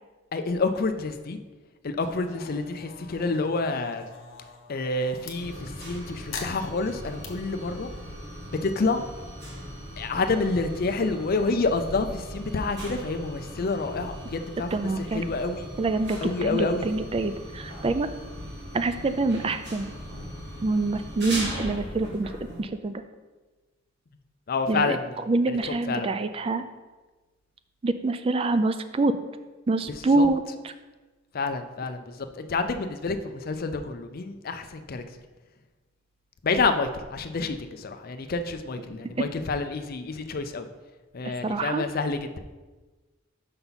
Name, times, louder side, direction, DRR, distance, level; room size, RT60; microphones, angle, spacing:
voice 1, 0.3-1.4 1.8-4.1 4.7-7.9 8.5-9.0 10.0-15.7 16.2-16.9 24.5-26.1 30.2-30.3 31.3-35.0 36.4-40.7 41.1-42.4, left 3 dB, 45° left, 8 dB, 0.5 m, -28 dB
sound 1, 2.0-5.4 6.3-7.3, left 5 dB, 90° left, 1.0 m, -43 dB
sound 2, 5.3-22.6, equal, 55° right, 1.7 m, -39 dB
voice 2, 14.7-15.2 15.8-18.1 18.7-19.9 20.6-22.3 22.6-23.0 24.7-25.0 25.3-26.6 27.8-29.1 29.7-30.7 41.2-41.8, right 3 dB, 30° right, 10 dB, 0.3 m, -26 dB
5.7 x 5.5 x 4.0 m, 1.2 s
head